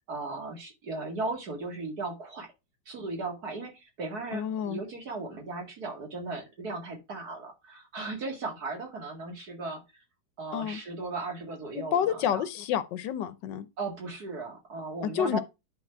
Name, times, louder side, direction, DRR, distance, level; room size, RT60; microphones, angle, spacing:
voice 1, 0.1-2.5 2.9-10.0 10.4-12.4 13.8-15.4, right 3 dB, 60° right, 2.6 m, -37 dB
voice 2, 4.3-4.8 10.5-10.8 11.7-13.7 15.1-15.4, left 9 dB, 85° left, 1.5 m, -29 dB
10.0 x 3.9 x 4.5 m
omnidirectional pair, 1.9 m